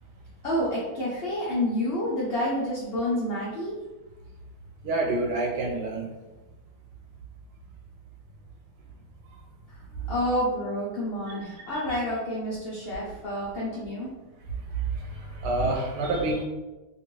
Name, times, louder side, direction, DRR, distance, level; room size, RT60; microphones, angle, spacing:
voice 1, 0.4-3.8 10.0-14.1, left 1 dB, 55° left, -6 dB, 0.6 m, -29 dB
voice 2, 4.8-6.1 11.9-12.0 15.4-16.4, right 2 dB, 85° right, 0 dB, 1.2 m, -27 dB
2.9 x 2.5 x 3.0 m, 1.1 s
omnidirectional pair, 1.7 m